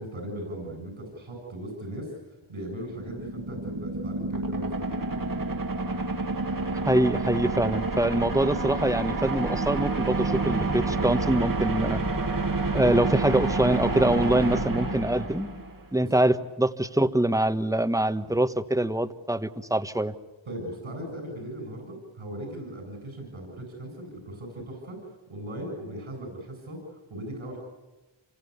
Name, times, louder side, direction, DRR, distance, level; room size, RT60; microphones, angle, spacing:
voice 1, 0.0-5.6 16.0-16.1 18.2-18.4 20.5-25.0 25.3-27.6, right 1 dB, 85° right, 2 dB, 8.0 m, -38 dB
sound 1, 2.7-15.9, right 3 dB, 45° right, 1.8 m, -29 dB
voice 2, 6.8-12.0 12.7-15.5 15.9-20.1, right 1 dB, 5° right, 10 dB, 1.3 m, -24 dB
27.0 x 22.5 x 8.2 m, 1.1 s
cardioid pair, 50°, 47 cm